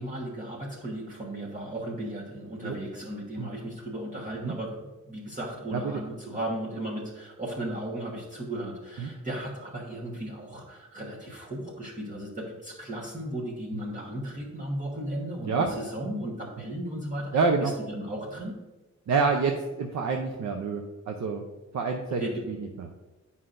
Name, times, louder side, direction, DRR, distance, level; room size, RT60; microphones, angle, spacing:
voice 1, 0.0-18.6 22.1-22.5, right 1 dB, 25° right, -5 dB, 1.2 m, -35 dB
voice 2, 17.3-17.7 19.1-21.4 21.7-22.2 22.5-22.9, right 4 dB, 75° right, 3 dB, 0.6 m, -27 dB
9.5 x 5.6 x 2.5 m, 1.2 s
wide cardioid pair, 170°, 29 cm